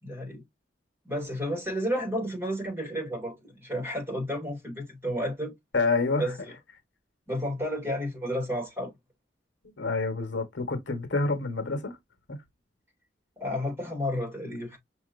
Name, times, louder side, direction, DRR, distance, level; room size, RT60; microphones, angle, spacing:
voice 1, 0.0-0.4 1.0-5.5 6.2-6.4 7.3-8.9 13.4-14.8, equal, 15° right, 2.6 m, -31 dB
voice 2, 5.7-6.3 9.6-12.0 12.3-12.4, left 3 dB, 75° left, 1.3 m, -28 dB
6.0 x 2.8 x 2.5 m
head